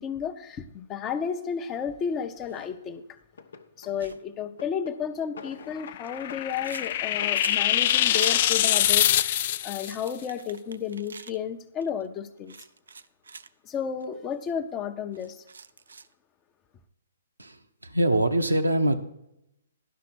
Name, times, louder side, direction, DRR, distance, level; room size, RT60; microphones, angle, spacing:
voice 1, 0.0-3.0 3.8-12.5 13.6-15.4, left 7 dB, 20° left, 9 dB, 0.8 m, -32 dB
Drawer open or close, 2.5-2.8 3.3-4.2 4.5-6.0 6.3-6.5 6.8-7.5, left 5 dB, 65° left, 0.9 m, -45 dB
sound 1, 4.0-4.2 5.5-8.4 8.7-9.0 9.6-11.4 11.8-12.1 12.5-13.5 14.0-14.1 14.3-14.5 15.1-16.1, right 5 dB, 75° right, 0.5 m, -44 dB
sound 2, 5.8-9.9, left 12 dB, 45° left, 0.4 m, -24 dB
voice 2, 17.4-19.0, right 1 dB, 90° right, 6 dB, 1.0 m, -24 dB
11.0 x 5.9 x 6.1 m, 0.82 s
figure-of-eight pair, 130°, 0 cm